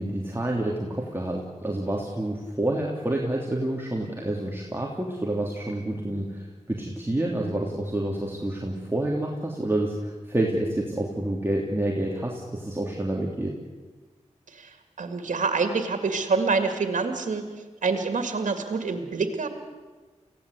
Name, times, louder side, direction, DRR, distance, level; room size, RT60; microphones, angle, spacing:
voice 1, 0.0-13.5, right 1 dB, 20° right, -2 dB, 3.2 m, -28 dB
voice 2, 14.5-17.5 17.8-19.5, right 4 dB, 85° right, 6 dB, 2.1 m, -26 dB
24.5 x 17.0 x 8.3 m, 1.3 s
cardioid pair, 45°, 13 cm